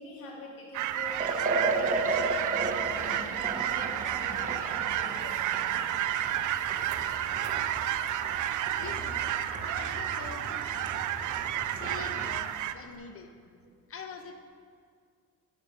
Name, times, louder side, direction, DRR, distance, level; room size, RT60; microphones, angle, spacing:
voice 1, 0.0-5.4 13.6-13.7, left 1 dB, 75° left, -3 dB, 2.5 m, -45 dB
sound 1, 0.7-12.7, right 12 dB, 65° right, 0.5 m, -31 dB
Liquid, 1.1-12.4, right 2 dB, 25° right, 1.0 m, -35 dB
voice 2, 8.8-9.4 9.8-11.0 11.3-13.3 13.9-14.5, left 5 dB, 40° left, 6 dB, 1.0 m, -45 dB
10.5 x 4.9 x 5.7 m, 2.1 s
cardioid pair, 100°, 33 cm